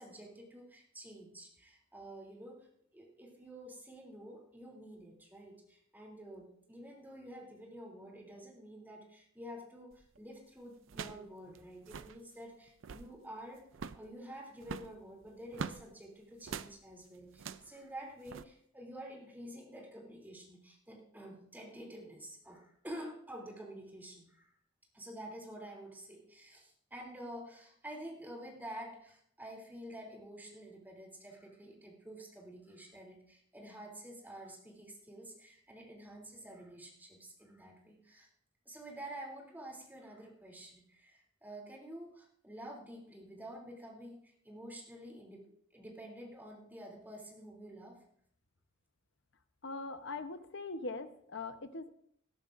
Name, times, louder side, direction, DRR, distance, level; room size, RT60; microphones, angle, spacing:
voice 1, 0.0-2.7 2.9-13.6 13.9-24.5 24.9-38.3 38.6-48.0, right 1 dB, 10° right, -1 dB, 3.0 m, -49 dB
sound 1, 9.9-10.2 10.9-11.3 11.6-11.7 11.8-12.2 12.7-13.1 13.7-14.1 14.6-15.8 16.4-16.7 17.3-17.7 18.3-18.4, right 5 dB, 75° right, 0.5 m, -43 dB
voice 2, 49.6-51.9, left 3 dB, 65° left, 9 dB, 0.9 m, -41 dB
19.0 x 12.5 x 2.6 m, 0.67 s
head